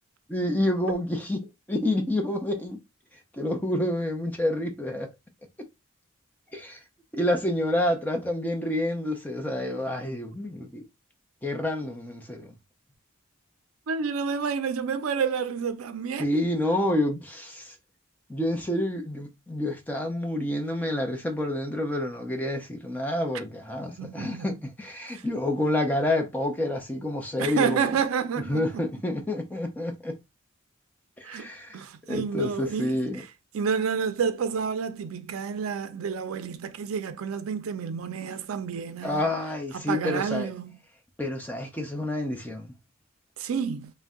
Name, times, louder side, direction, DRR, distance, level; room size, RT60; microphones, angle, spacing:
voice 1, 0.3-2.8 3.3-5.1 5.6-5.7 6.5-6.8 7.1-10.8 11.4-12.5 16.2-17.7 18.3-28.0 28.5-30.2 31.2-31.8 32.1-33.2 39.0-40.5 41.2-42.7, left 1 dB, 10° left, 0.5 m, -28 dB
voice 2, 13.9-16.3 24.0-24.5 25.1-25.2 27.4-28.8 31.2-31.5 31.7-33.0 33.5-39.2 39.7-40.8 43.4-43.9, right 6 dB, 90° right, 0.4 m, -29 dB
2.6 x 2.1 x 3.5 m
head